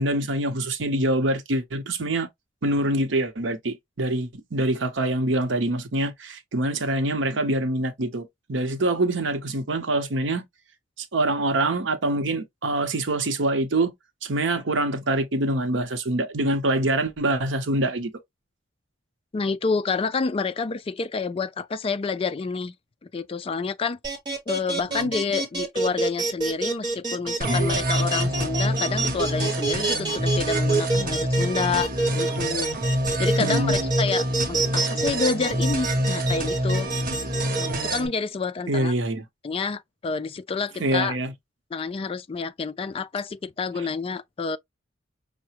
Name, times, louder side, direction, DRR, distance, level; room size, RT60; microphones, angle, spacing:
voice 1, 0.0-2.3 2.6-10.4 11.0-13.9 14.2-18.1 25.0-25.1 33.4-33.9 38.7-39.2 40.8-41.3, right 1 dB, 70° right, 0.8 m, -25 dB
voice 2, 19.3-22.7 23.1-24.0 24.5-32.7 33.2-36.9 37.6-38.9 39.4-41.2 41.7-44.6, left 4 dB, 30° left, 0.3 m, -28 dB
sound 1, 24.0-37.7, right 3 dB, 25° right, 1.1 m, -27 dB
sound 2, 27.4-38.1, equal, 45° right, 1.1 m, -26 dB
5.7 x 2.1 x 2.9 m
head